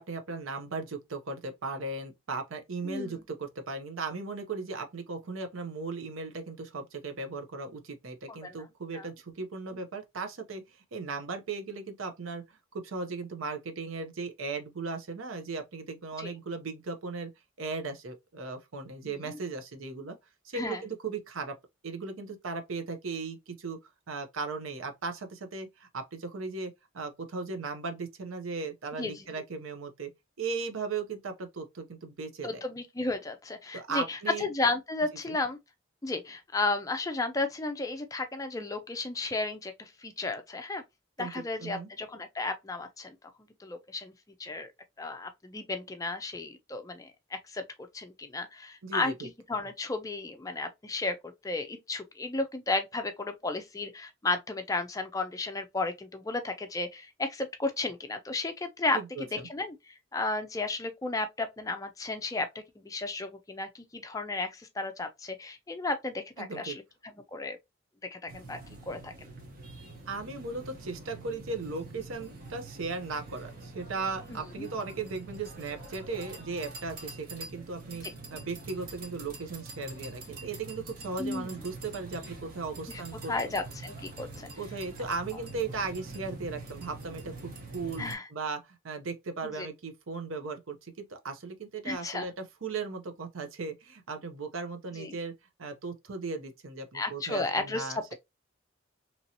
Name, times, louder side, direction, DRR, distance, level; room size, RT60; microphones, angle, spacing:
voice 1, 0.0-17.3 17.6-20.2 20.4-21.5 21.8-23.8 24.1-30.1 30.4-32.6 33.7-34.5 35.3-35.4 41.2-41.3 41.6-41.9 48.8-49.1 58.9-59.5 66.4-66.8 70.1-78.0 78.3-83.5 84.6-95.3 95.6-98.1, right 4 dB, 80° right, 0.6 m, -37 dB
voice 2, 2.8-3.2 8.3-8.6 8.9-9.1 16.2-16.3 19.0-19.4 20.5-20.8 29.0-29.3 32.4-35.6 36.0-40.8 41.2-43.2 43.6-44.1 44.4-44.7 45.0-47.6 47.9-66.8 67.3-67.6 68.1-68.6 68.9-69.3 74.3-74.7 81.2-81.6 82.9-83.0 83.3-84.5 88.0-88.3 89.4-89.7 91.8-92.3 94.9-95.2 96.9-98.1, left 3 dB, 15° left, 0.4 m, -33 dB
sound 1, 68.3-88.1, right 3 dB, 45° right, 1.0 m, -45 dB
2.9 x 2.7 x 2.7 m
head